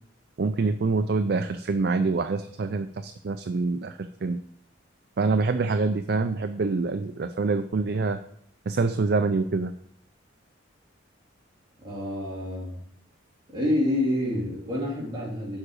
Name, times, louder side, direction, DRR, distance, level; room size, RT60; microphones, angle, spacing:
voice 1, 0.4-4.4 5.2-8.2 8.7-9.7, right 3 dB, 55° right, 8 dB, 0.4 m, -26 dB
voice 2, 11.8-12.9 13.5-15.6, left 1 dB, 25° right, -6 dB, 3.0 m, -28 dB
7.3 x 4.9 x 6.3 m, 0.67 s
head